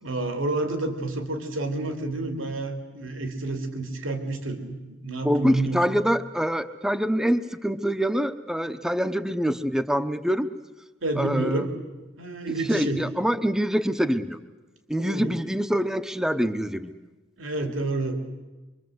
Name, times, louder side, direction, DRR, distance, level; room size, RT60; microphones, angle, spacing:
voice 1, 0.0-5.8 11.0-11.7 12.2-13.0 15.0-15.3 17.4-18.3, right 2 dB, 80° right, 5 dB, 2.9 m, -29 dB
voice 2, 5.2-10.5 11.2-11.7 12.7-14.4 14.9-16.9, equal, 5° right, 8 dB, 0.8 m, -25 dB
25.0 x 24.5 x 7.9 m, 1.2 s
head